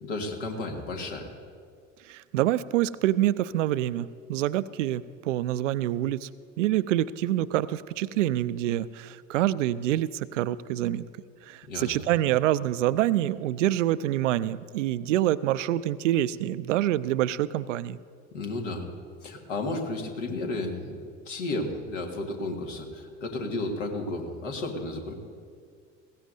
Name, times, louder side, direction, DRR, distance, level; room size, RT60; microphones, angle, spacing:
voice 1, 0.0-1.3 11.7-12.0 18.3-18.9 19.2-21.0 21.3-25.1, left 2 dB, 70° left, 2 dB, 1.9 m, -33 dB
voice 2, 2.0-6.3 6.6-11.0 11.4-18.0, right 13 dB, 70° right, 16 dB, 0.5 m, -26 dB
20.0 x 16.5 x 2.7 m, 2.1 s
figure-of-eight pair, 65°, 39 cm